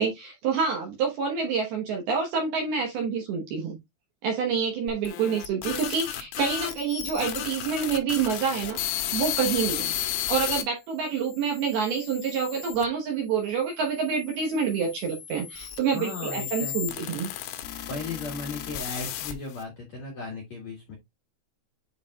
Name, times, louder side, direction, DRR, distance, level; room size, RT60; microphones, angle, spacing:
voice 1, 0.0-3.7 4.2-8.8 9.1-9.9 10.3-17.3, right 6 dB, 70° right, 2.4 m, -27 dB
sound 1, 4.9-10.6 11.3-12.9 13.7-19.6, left 11 dB, 80° left, 3.6 m, -34 dB
voice 2, 15.9-17.2 17.9-21.0, left 3 dB, 65° left, 1.7 m, -36 dB
10.5 x 4.2 x 2.3 m
omnidirectional pair, 5.9 m